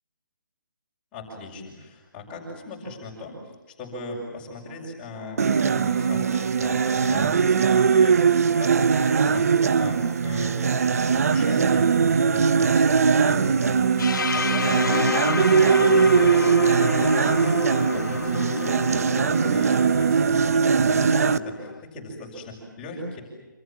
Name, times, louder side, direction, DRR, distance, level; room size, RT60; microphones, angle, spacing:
voice 1, 1.1-3.4 3.7-23.2, left 2 dB, 10° left, -5 dB, 6.4 m, -38 dB
sound 1, 5.4-21.4, right 6 dB, 45° right, 1.1 m, -21 dB
sound 2, 14.0-21.8, left 5 dB, 65° left, 2.4 m, -29 dB
28.0 x 27.5 x 7.5 m, 1.2 s
hypercardioid pair, 175°, 11 cm